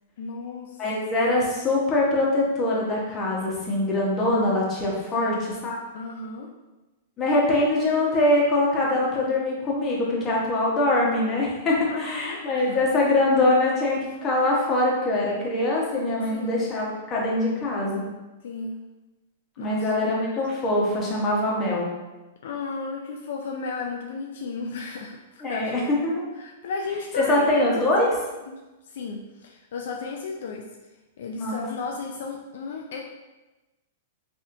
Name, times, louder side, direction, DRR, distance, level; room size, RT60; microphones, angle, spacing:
voice 1, 0.2-0.8 5.2-5.5 5.9-6.5 11.9-12.9 16.3-16.6 18.4-18.8 19.6-20.2 22.4-26.1 26.4-27.9 28.5-28.6 28.9-30.7 31.2-33.0, left 4 dB, 70° left, 0 dB, 0.4 m, -34 dB
voice 2, 0.8-5.3 5.6-5.7 7.2-18.0 19.6-21.9 25.4-26.2 27.2-28.1 31.4-31.6, left 2 dB, 25° left, -4 dB, 1.1 m, -23 dB
4.2 x 2.7 x 2.6 m, 1.1 s
hypercardioid pair, 130°, 0 cm